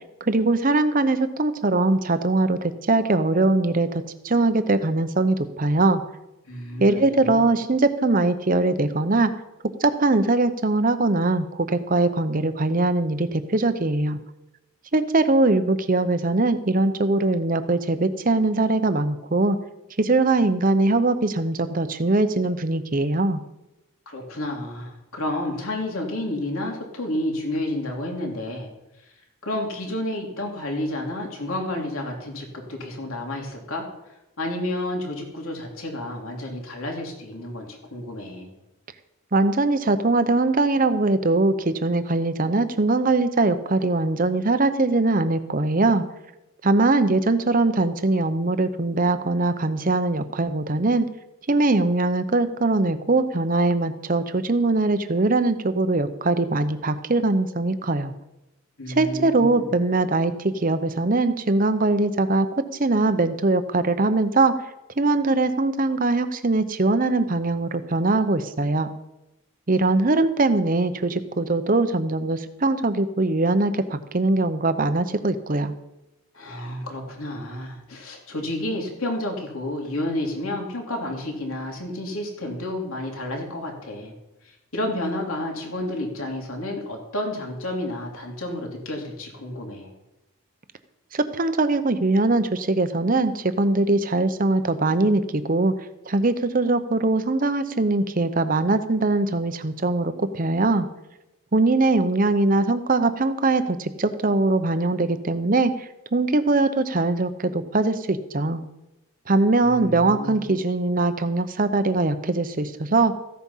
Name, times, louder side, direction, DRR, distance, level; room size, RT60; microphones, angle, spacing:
voice 1, 0.2-6.0 6.8-9.3 9.8-14.2 14.9-19.6 20.0-23.4 39.3-46.0 46.6-51.1 51.5-58.1 58.9-64.6 65.0-68.9 69.7-75.7 91.1-95.7 96.1-100.9 101.5-105.7 106.1-108.6 109.3-113.2, right 2 dB, 40° right, 11 dB, 0.8 m, -21 dB
voice 2, 6.5-7.4 24.1-28.7 29.4-33.9 34.4-38.5 58.8-59.6 76.3-84.1 84.4-89.9 109.6-110.4, left 1 dB, 75° left, 0 dB, 3.1 m, -30 dB
15.0 x 8.3 x 5.7 m, 0.94 s
head